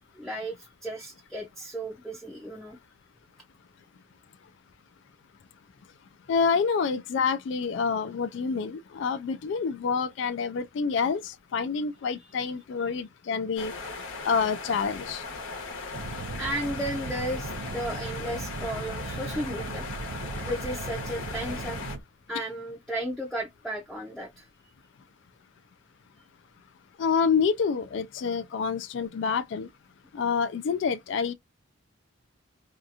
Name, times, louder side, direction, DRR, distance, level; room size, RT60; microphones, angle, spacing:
voice 1, 0.1-2.8 12.2-12.3 16.4-19.9 20.4-21.8 22.3-24.5, right 1 dB, ahead, 0.5 m, -34 dB
voice 2, 6.3-13.7 14.2-15.2 27.0-29.7 30.1-31.3, left 5 dB, 65° left, 0.3 m, -27 dB
sound 1, 13.6-22.0, left 4 dB, 85° left, 1.1 m, -38 dB
sound 2, 15.9-22.0, right 3 dB, 90° right, 0.5 m, -38 dB
2.8 x 2.3 x 2.4 m
head